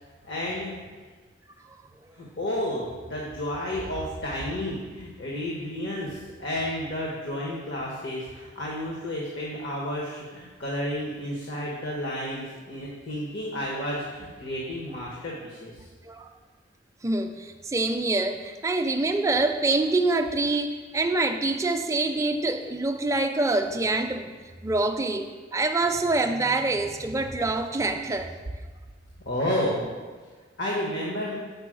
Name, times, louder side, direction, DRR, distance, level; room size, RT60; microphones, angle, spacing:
voice 1, 0.2-0.7 2.1-15.7 29.2-29.8 30.6-31.4, left 1 dB, 70° left, -4 dB, 1.1 m, -31 dB
voice 2, 17.0-24.3 24.6-28.4, right 2 dB, 15° right, 6 dB, 0.3 m, -25 dB
5.3 x 4.4 x 6.2 m, 1.4 s
head